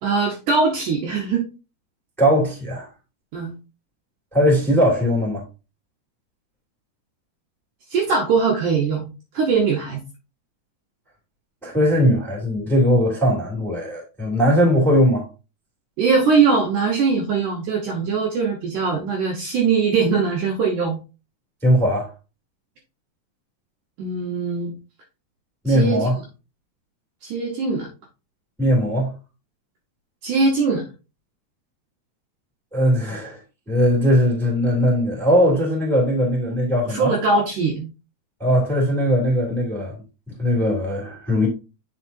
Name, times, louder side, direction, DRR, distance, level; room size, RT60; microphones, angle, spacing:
voice 1, 0.0-1.5 3.3-3.5 7.9-9.1 9.3-10.0 16.0-21.0 24.0-24.7 25.7-26.1 27.2-27.9 30.2-30.8 36.9-37.9, right 4 dB, 70° right, 2.1 m, -21 dB
voice 2, 2.2-2.9 4.3-5.4 11.6-15.3 21.6-22.1 25.6-26.1 28.6-29.1 32.7-33.4 33.7-37.1 38.4-41.5, equal, ahead, 1.7 m, -19 dB
8.3 x 5.8 x 2.6 m
omnidirectional pair, 4.5 m